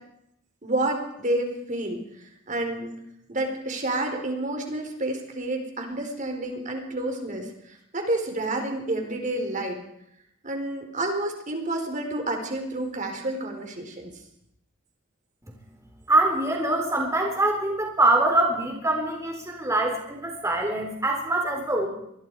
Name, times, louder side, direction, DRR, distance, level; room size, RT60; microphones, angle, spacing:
voice 1, 0.6-2.0 2.5-2.9 3.3-9.8 10.4-14.1, right 1 dB, 40° right, 3 dB, 4.3 m, -29 dB
voice 2, 16.1-21.9, right 2 dB, 15° right, 1 dB, 3.9 m, -24 dB
26.0 x 21.5 x 4.8 m, 0.77 s
head